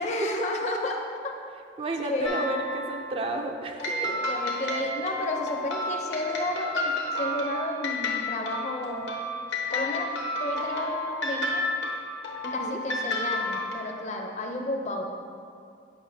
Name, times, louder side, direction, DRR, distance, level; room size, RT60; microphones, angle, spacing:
voice 1, 0.0-1.3 2.0-2.4 3.9-9.0 9.7-10.1 10.4-11.7 12.5-15.0, left 1 dB, 40° left, 2 dB, 0.6 m, -32 dB
voice 2, 1.8-4.2 12.4-12.8, right 2 dB, 30° right, 3 dB, 0.4 m, -32 dB
sound 1, 2.2-3.1 3.8-13.7, left 1 dB, 75° left, 0.9 m, -31 dB
8.6 x 5.6 x 2.7 m, 2.4 s
head